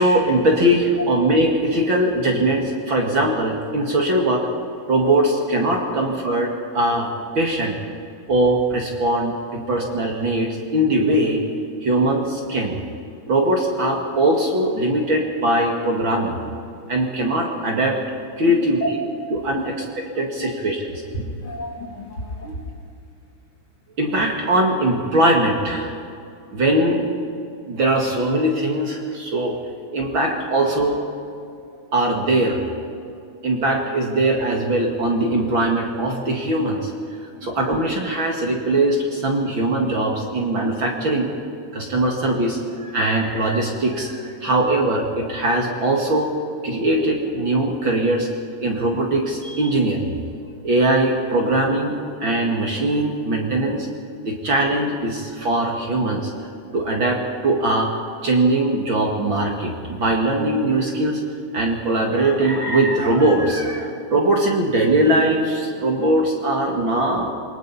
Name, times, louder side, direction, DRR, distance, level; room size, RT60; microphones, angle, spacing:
voice 1, 0.0-4.5 4.9-7.1 7.3-7.8 8.3-11.4 11.8-12.8 13.3-16.4 16.9-18.0 18.4-19.0 19.3-21.0 24.0-25.9 26.5-27.1 27.6-29.6 29.9-31.0 31.9-32.6 33.4-36.9 37.4-41.3 41.7-46.3 46.6-48.3 48.6-50.1 50.6-53.9 54.3-56.3 56.7-57.9 58.2-61.2 61.5-67.3, right 1 dB, 45° right, 0 dB, 2.5 m, -21 dB
voice 2, 18.5-18.9 19.5-19.6 20.2-20.5 21.1-22.6 30.0-30.1 37.4-37.5, equal, 45° left, -2 dB, 3.7 m, -30 dB
27.5 x 23.5 x 4.2 m, 2.5 s
omnidirectional pair, 3.4 m